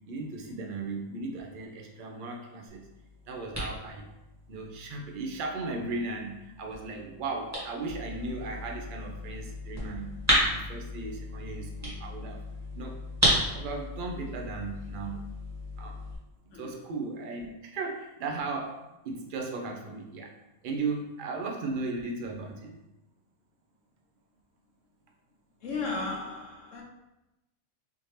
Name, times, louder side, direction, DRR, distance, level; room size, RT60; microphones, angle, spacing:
voice 1, 0.0-2.9 3.3-4.1 4.5-10.1 10.4-12.4 12.7-13.0 13.5-15.2 15.8-16.0 16.5-20.3 20.6-22.8, right 3 dB, 55° right, 0.6 m, -36 dB
sound 1, 2.7-16.2, equal, 15° right, 1.3 m, -34 dB
voice 2, 16.5-16.8 25.6-26.8, left 3 dB, 75° left, 1.0 m, -35 dB
3.5 x 2.7 x 3.2 m
omnidirectional pair, 1.3 m